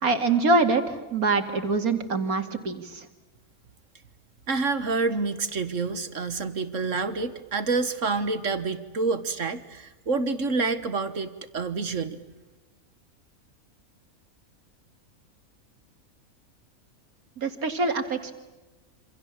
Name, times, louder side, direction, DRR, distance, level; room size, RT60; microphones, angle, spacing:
voice 1, 0.0-3.1 17.4-18.3, right 3 dB, 90° right, 7 dB, 2.9 m, -24 dB
voice 2, 4.5-12.2, right 4 dB, 60° right, 11 dB, 1.7 m, -28 dB
28.0 x 26.5 x 7.4 m, 1.2 s
omnidirectional pair, 1.5 m